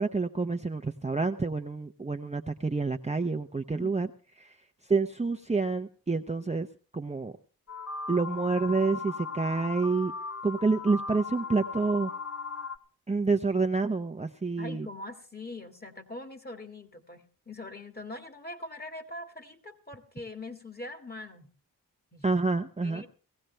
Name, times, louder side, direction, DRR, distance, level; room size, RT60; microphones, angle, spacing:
voice 1, 0.0-4.1 4.4-4.5 4.9-6.7 6.9-7.3 8.1-10.1 10.4-12.1 13.1-14.9 22.2-23.0, right 4 dB, 15° right, 5 dB, 0.7 m, -28 dB
sound 1, 7.7-12.8, left 4 dB, 40° left, 1.3 m, -37 dB
voice 2, 14.6-21.5 22.1-22.3 22.8-23.1, left 2 dB, 25° left, 7 dB, 2.0 m, -42 dB
18.5 x 15.5 x 3.3 m, 0.37 s
cardioid pair, 55°, 39 cm